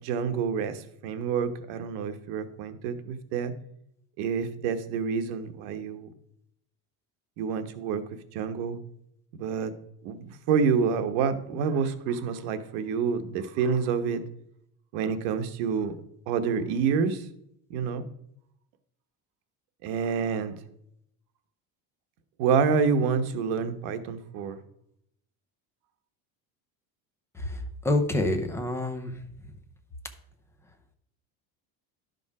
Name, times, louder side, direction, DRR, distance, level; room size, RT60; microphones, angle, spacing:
voice 1, 0.0-3.5 4.2-6.1 7.4-8.0 8.3-8.8 9.3-9.7 10.0-14.2 14.9-15.9 16.3-17.3 17.7-18.0 19.8-20.5 22.4-24.6, right 6 dB, 80° right, 9 dB, 1.1 m, -28 dB
voice 2, 27.3-29.2, left 1 dB, 5° left, 6 dB, 0.6 m, -27 dB
11.5 x 5.3 x 4.8 m, 0.73 s
cardioid pair, 180°, 38 cm